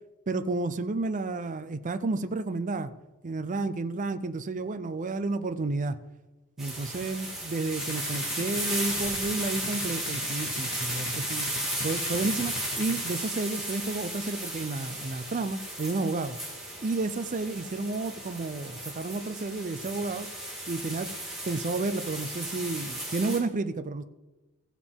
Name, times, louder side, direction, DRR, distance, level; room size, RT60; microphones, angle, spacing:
voice 1, 0.3-2.9 3.2-6.0 6.6-11.5 11.8-16.4 16.8-20.3 20.7-21.1 21.5-24.0, right 3 dB, 35° right, 10 dB, 0.5 m, -31 dB
sound 1, 6.6-23.4, right 1 dB, ahead, 3.4 m, -35 dB
sound 2, 7.8-13.1, left 4 dB, 65° left, 0.7 m, -40 dB
15.5 x 7.3 x 3.6 m, 1.1 s
head